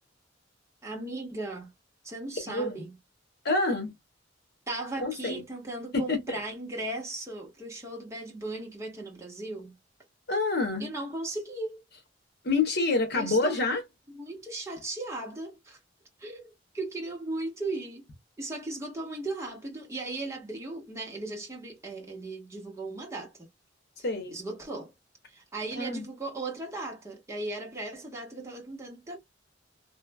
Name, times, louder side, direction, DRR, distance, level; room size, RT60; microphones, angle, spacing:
voice 1, 0.8-1.7 2.0-2.9 4.7-9.7 10.8-11.8 13.1-13.6 14.1-15.8 16.2-18.1 18.4-23.3 24.3-24.9 25.3-29.2, right 2 dB, 15° right, 1.1 m, -37 dB
voice 2, 2.5-2.8 3.4-3.9 5.0-5.4 5.9-6.4 10.3-10.9 12.4-13.8 24.0-24.4 25.7-26.0, left 3 dB, 60° left, 1.2 m, -27 dB
3.2 x 2.4 x 2.2 m
head